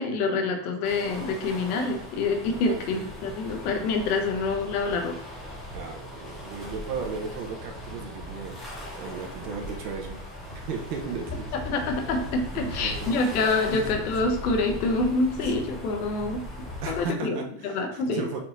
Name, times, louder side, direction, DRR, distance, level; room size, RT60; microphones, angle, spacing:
voice 1, 0.0-5.2 11.5-16.4 16.9-18.3, left 3 dB, 65° left, 4 dB, 1.1 m, -26 dB
sound 1, 0.8-17.1, left 1 dB, ahead, 0.4 m, -39 dB
voice 2, 2.7-3.1 4.3-4.4 5.7-8.6 9.0-10.2 10.5-11.5 12.5-13.1 13.7-14.1 15.4-15.7 16.8-18.4, right 5 dB, 85° right, 2 dB, 1.1 m, -35 dB
4.3 x 3.8 x 2.7 m, 0.63 s
supercardioid pair, 155°, 46 cm